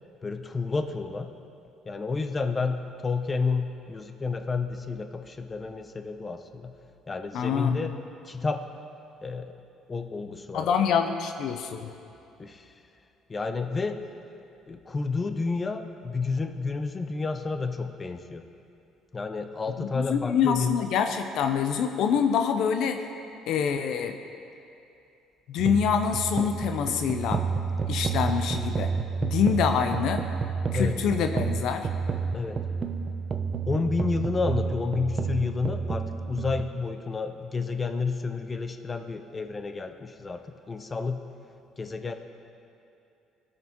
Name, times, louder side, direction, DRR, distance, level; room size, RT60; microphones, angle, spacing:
voice 1, 0.2-1.3 1.9-6.7 7.1-7.9 8.2-8.6 9.2-9.5 9.9-10.9 12.4-12.7 13.3-14.0 14.7-18.4 19.1-20.7 30.7-31.0 32.3-32.6 33.7-41.2 41.8-42.2, left 4 dB, 25° left, 8 dB, 0.6 m, -30 dB
voice 2, 7.3-7.8 10.5-11.9 19.8-23.1 23.5-24.2 25.5-27.4 27.9-28.9 29.2-30.2 30.7-31.9, left 7 dB, 70° left, 7 dB, 0.5 m, -26 dB
sound 1, 25.6-36.6, right 5 dB, 40° right, 0.6 m, -30 dB
17.5 x 6.6 x 2.9 m, 2.7 s
supercardioid pair, 90°, 0 cm